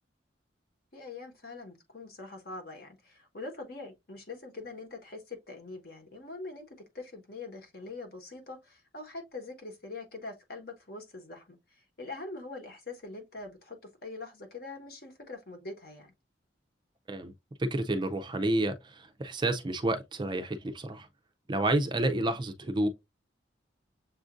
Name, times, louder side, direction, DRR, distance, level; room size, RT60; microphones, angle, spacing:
voice 1, 0.9-16.1, left 3 dB, 50° left, 1.1 m, -43 dB
voice 2, 17.6-21.1 21.5-22.9, right 1 dB, 25° right, 0.4 m, -30 dB
7.0 x 2.5 x 2.4 m
head